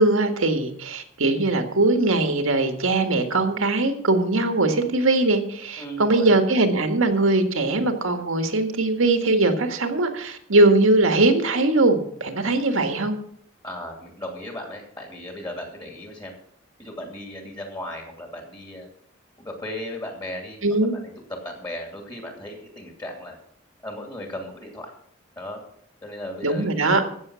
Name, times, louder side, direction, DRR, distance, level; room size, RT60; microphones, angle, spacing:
voice 1, 0.0-13.1 20.6-21.0 26.4-27.0, right 2 dB, 80° right, 6 dB, 1.8 m, -21 dB
voice 2, 5.8-6.4 13.6-16.3 16.8-18.9 19.4-20.6 21.0-23.4 23.8-24.9 25.4-25.6 26.0-26.9, left 1 dB, 20° left, 2 dB, 2.7 m, -36 dB
15.5 x 6.9 x 6.3 m, 0.67 s
head